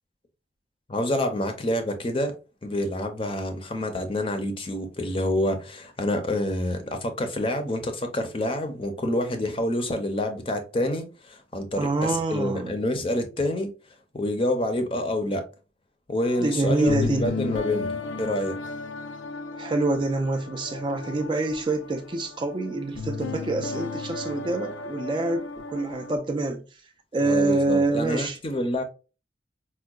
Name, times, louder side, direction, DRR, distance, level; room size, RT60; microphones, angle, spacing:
voice 1, 0.9-2.3 2.6-13.7 14.1-15.4 16.1-17.9 18.2-18.6 27.2-28.8, left 1 dB, 30° left, 0.5 m, -27 dB
voice 2, 11.8-12.8 16.4-17.3 19.6-26.6 27.1-28.4, right 2 dB, 25° right, 0.3 m, -26 dB
sound 1, 16.2-26.2, left 3 dB, 85° left, 0.4 m, -34 dB
4.5 x 2.2 x 2.3 m
head